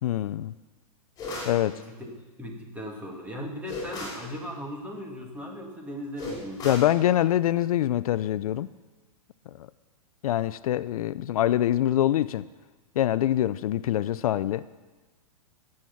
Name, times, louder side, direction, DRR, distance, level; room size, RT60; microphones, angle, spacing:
voice 1, 0.0-0.5 1.4-1.8 6.6-8.7 9.5-9.7 10.2-12.5 13.0-14.6, left 12 dB, 70° left, 16 dB, 0.4 m, -24 dB
sound 1, 1.2-1.6 3.7-4.3 6.2-6.9, left 2 dB, 20° left, 5.4 m, -36 dB
voice 2, 1.8-2.1 2.4-7.1, left 1 dB, 10° right, 1 dB, 2.0 m, -38 dB
15.5 x 7.8 x 7.1 m, 1.3 s
hypercardioid pair, 140°, 19 cm